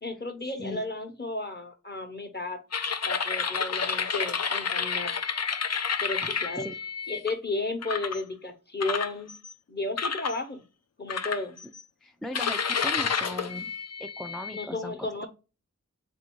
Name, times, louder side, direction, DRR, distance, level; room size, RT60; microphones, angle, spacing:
voice 1, 0.0-2.6 3.0-5.1 6.0-6.7 7.1-9.3 9.7-10.6 11.0-11.6 14.5-15.3, left 2 dB, 35° left, 7 dB, 0.9 m, -33 dB
sound 1, 2.7-7.3 7.8-8.2 8.8-9.5 10.0-10.4 11.1-11.8 12.3-14.7, left 5 dB, 55° left, 0.5 m, -30 dB
voice 2, 12.0-13.7 14.0-15.3, equal, ahead, 6 dB, 0.3 m, -38 dB
3.5 x 2.7 x 4.5 m, 0.31 s
wide cardioid pair, 45°, 31 cm